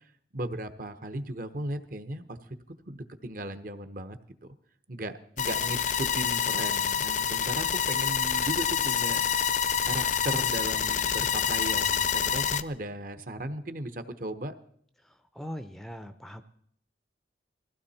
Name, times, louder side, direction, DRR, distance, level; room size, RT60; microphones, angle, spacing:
voice 1, 0.3-2.4 2.9-4.2 4.9-9.6 9.8-14.5, right 1 dB, 45° right, 10 dB, 1.1 m, -36 dB
sound 1, 5.4-12.6, left 7 dB, 40° left, 0.6 m, -27 dB
voice 2, 15.0-16.4, equal, ahead, 9 dB, 0.6 m, -41 dB
20.5 x 15.5 x 4.3 m, 0.64 s
head